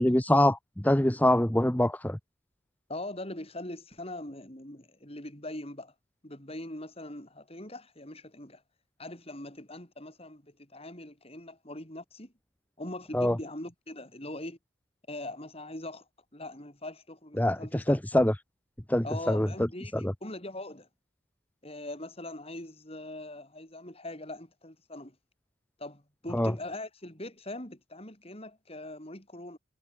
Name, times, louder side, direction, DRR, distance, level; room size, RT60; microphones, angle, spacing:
voice 1, 0.0-2.2 13.1-13.4 17.4-18.4 18.9-19.7 19.9-20.1 26.3-26.5, left 1 dB, 10° left, 0.9 m, -24 dB
voice 2, 2.9-5.9 6.2-8.6 9.0-12.3 12.8-14.6 15.1-18.2 19.0-20.9 21.6-25.2 25.8-29.6, left 1 dB, 30° left, 5.6 m, -42 dB
head